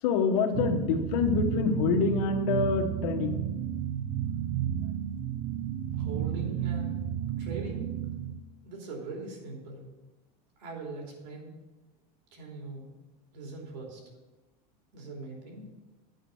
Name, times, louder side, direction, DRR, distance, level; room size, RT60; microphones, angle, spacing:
voice 1, 0.0-3.4, left 5 dB, 60° left, 4 dB, 1.2 m, -26 dB
sound 1, 0.5-8.4, right 10 dB, 35° right, 0.5 m, -32 dB
voice 2, 6.0-7.1 7.4-7.9 8.6-9.9 10.6-11.5 12.3-12.9 13.3-14.0 14.9-15.7, right 3 dB, 80° right, -1 dB, 3.2 m, -41 dB
9.0 x 5.2 x 6.9 m, 1.1 s
supercardioid pair, 155°, 21 cm